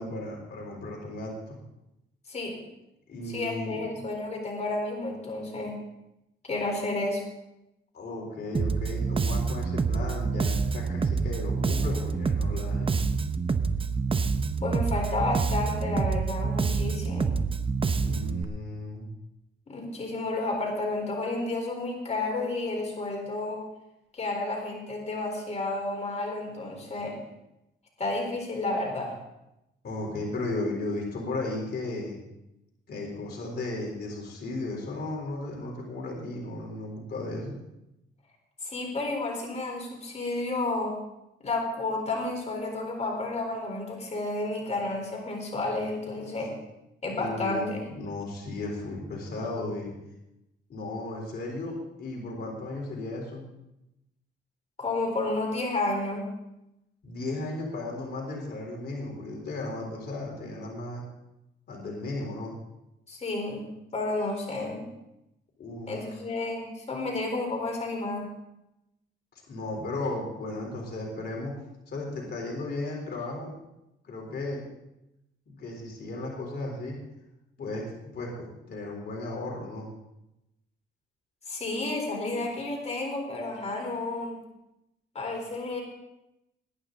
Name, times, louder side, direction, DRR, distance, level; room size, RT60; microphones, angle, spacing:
voice 1, 0.0-1.6 3.1-3.8 7.9-13.1 17.9-19.1 29.8-32.2 32.9-37.6 47.2-49.9 50.7-53.4 57.0-61.0 61.7-62.6 65.6-65.9 69.5-71.5 71.9-73.5 74.0-74.6 75.5-77.0 77.6-77.8 78.1-79.9, left 2 dB, 55° left, -1 dB, 4.0 m, -35 dB
voice 2, 3.3-5.8 6.4-7.2 14.6-17.4 19.7-23.6 24.1-27.2 28.0-29.2 38.6-41.0 41.4-46.5 47.0-47.9 54.8-56.3 63.1-63.7 63.9-64.8 65.9-68.3 81.5-84.4 85.1-85.8, left 2 dB, 35° left, 1 dB, 4.3 m, -31 dB
Bass guitar, 8.5-18.4, right 4 dB, 25° right, 0.8 m, -27 dB
20.5 x 9.8 x 4.0 m, 0.90 s
cardioid pair, 90°, 20 cm